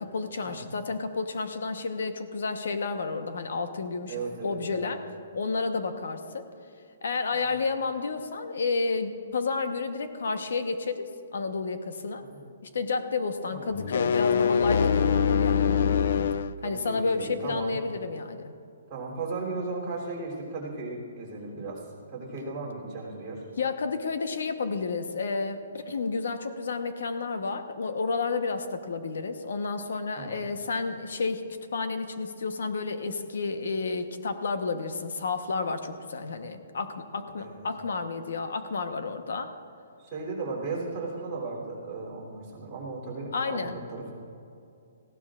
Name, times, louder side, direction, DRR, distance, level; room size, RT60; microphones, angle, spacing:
voice 1, 0.0-5.0 5.3-6.4 7.0-12.2 12.7-15.7 16.6-18.5 23.6-31.4 31.7-39.5 43.3-43.8, left 4 dB, 65° left, 8 dB, 1.0 m, -31 dB
voice 2, 4.1-5.0 7.3-7.6 12.2-12.4 13.5-13.8 16.6-17.8 18.9-23.4 30.1-30.4 37.4-37.6 40.0-44.1, right 3 dB, 15° right, -7 dB, 3.3 m, -36 dB
sound 1, 13.7-16.5, left 6 dB, 45° left, 0.3 m, -23 dB
19.0 x 16.0 x 2.5 m, 2.6 s
hypercardioid pair, 180°, 0 cm